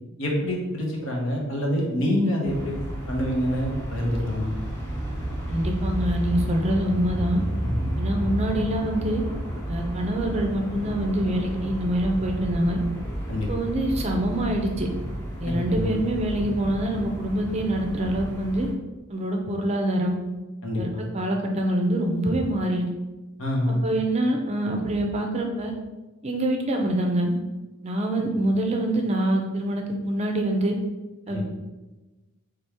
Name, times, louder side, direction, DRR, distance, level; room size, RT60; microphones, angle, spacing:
voice 1, 0.2-2.7 3.1-4.5 7.6-7.9 13.3-13.5 15.4-16.0 20.6-21.1 23.4-23.8 31.3-31.4, left 1 dB, 60° left, -1 dB, 1.1 m, -26 dB
sound 1, 2.5-18.7, equal, 10° left, 1.1 m, -31 dB
voice 2, 5.5-7.4 8.0-9.2 9.7-12.8 13.5-14.9 15.4-18.7 19.1-20.2 20.8-22.8 23.7-25.7 26.2-27.3 27.8-30.7 31.3-31.4, right 1 dB, 30° right, 2 dB, 0.5 m, -25 dB
4.4 x 3.5 x 3.4 m, 1.1 s
head